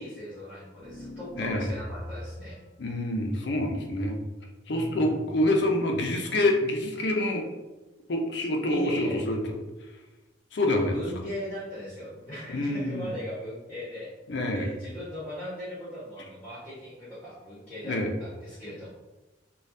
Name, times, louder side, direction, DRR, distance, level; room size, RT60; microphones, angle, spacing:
voice 1, 0.0-2.6 4.7-5.3 8.7-9.2 10.6-14.1 14.5-18.9, equal, 10° left, -10 dB, 1.1 m, -39 dB
sound 1, 0.7-2.6, left 1 dB, 20° right, 1.3 m, -41 dB
voice 2, 2.8-4.2 4.7-7.4 8.1-9.4 10.5-10.9 12.5-13.1 14.3-14.7 17.8-18.1, left 1 dB, 65° left, 2 dB, 0.5 m, -26 dB
3.2 x 2.3 x 2.6 m, 1.1 s
head